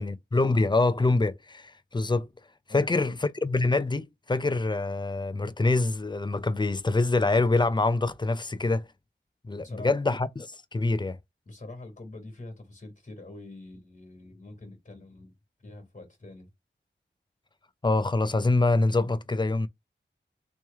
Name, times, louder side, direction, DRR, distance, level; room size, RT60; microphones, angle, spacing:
voice 1, 0.0-2.3 2.7-8.8 9.4-11.2 17.8-19.7, left 2 dB, 25° left, 0.4 m, -25 dB
voice 2, 2.7-3.2 9.6-9.9 11.5-15.3 15.6-16.5, left 2 dB, 45° left, 1.8 m, -45 dB
3.0 x 3.0 x 3.4 m
wide cardioid pair, 55°, 19 cm